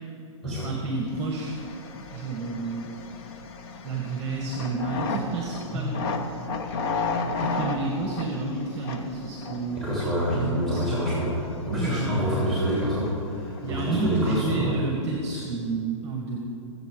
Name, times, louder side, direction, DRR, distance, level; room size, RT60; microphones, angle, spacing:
voice 1, 0.5-1.6 2.1-2.9 3.8-6.1 7.2-9.9 10.3-10.8 11.6-12.2 13.6-16.4, right 3 dB, 20° right, 0 dB, 1.5 m, -30 dB
sound 1, 1.1-15.0, left 4 dB, 50° left, 1.2 m, -35 dB
voice 2, 9.8-14.9, equal, ahead, -7 dB, 3.2 m, -27 dB
22.0 x 7.9 x 3.8 m, 3.0 s
hypercardioid pair, 130°, 16 cm